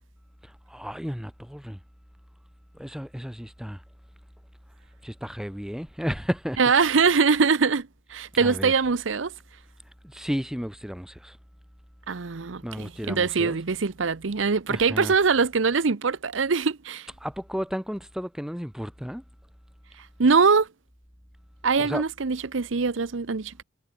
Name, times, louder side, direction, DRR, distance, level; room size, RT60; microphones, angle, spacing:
voice 1, 0.4-1.8 2.7-3.8 5.0-6.6 8.4-8.7 10.0-11.4 12.6-13.6 14.7-15.1 17.2-19.2 21.8-22.0, equal, 5° right, 2.4 m, -33 dB
voice 2, 6.6-9.3 12.1-17.1 20.2-20.7 21.6-23.6, right 5 dB, 80° right, 0.8 m, -23 dB
head